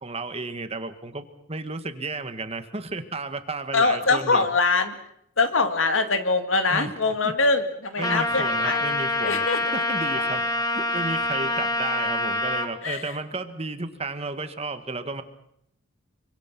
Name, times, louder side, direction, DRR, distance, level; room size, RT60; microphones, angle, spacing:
voice 1, 0.0-4.5 6.7-6.9 7.2-7.3 8.0-10.4 10.7-15.2, right 3 dB, 30° right, 9 dB, 1.7 m, -33 dB
voice 2, 3.7-5.0 5.4-8.9 9.2-9.8 10.1-10.3 12.8-13.1, left 3 dB, 90° left, 8 dB, 2.3 m, -23 dB
Trumpet, 8.0-12.7, left 2 dB, 20° left, 2.2 m, -26 dB
26.5 x 24.5 x 6.1 m, 0.75 s
head